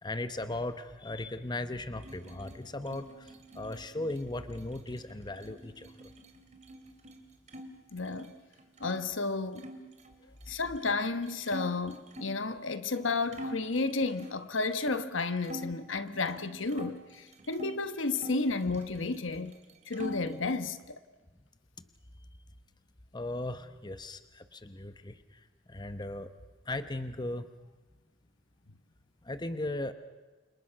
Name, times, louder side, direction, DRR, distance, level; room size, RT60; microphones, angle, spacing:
voice 1, 0.0-5.9 23.1-25.1 25.7-26.3 26.7-27.5 29.2-29.9, left 2 dB, 20° left, 1.0 m, -37 dB
sound 1, 1.9-7.7 8.0-9.0 9.6-12.4 12.9-13.0 13.3-15.7 16.1-17.8 18.1-19.3 19.5-20.4, equal, 35° right, 2.6 m, -46 dB
voice 2, 7.9-8.3 8.8-9.7 10.5-19.6 19.9-21.0, left 3 dB, 75° left, 1.3 m, -32 dB
29.5 x 26.0 x 5.8 m
head